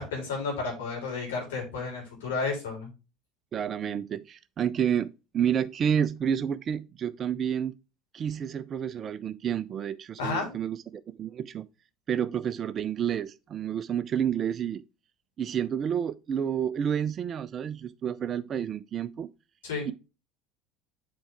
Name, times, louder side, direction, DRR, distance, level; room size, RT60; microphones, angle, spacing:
voice 1, 0.0-2.9 10.2-10.5 19.6-19.9, left 4 dB, 75° left, 3.5 m, -32 dB
voice 2, 3.5-7.8 8.1-11.7 12.1-14.8 15.4-19.3 19.9-20.0, right 8 dB, 40° right, 0.4 m, -30 dB
7.8 x 4.8 x 3.4 m
hypercardioid pair, 70°, 0 cm